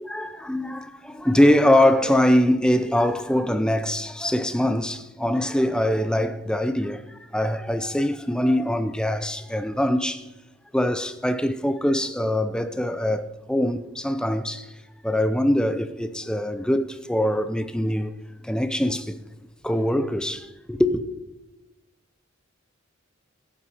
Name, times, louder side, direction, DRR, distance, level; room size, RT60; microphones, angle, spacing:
voice 1, 0.0-10.3 10.7-14.7 15.0-18.1 18.4-19.2 19.6-21.0, left 1 dB, 5° left, 0.6 m, -23 dB
16.0 x 8.8 x 4.9 m
head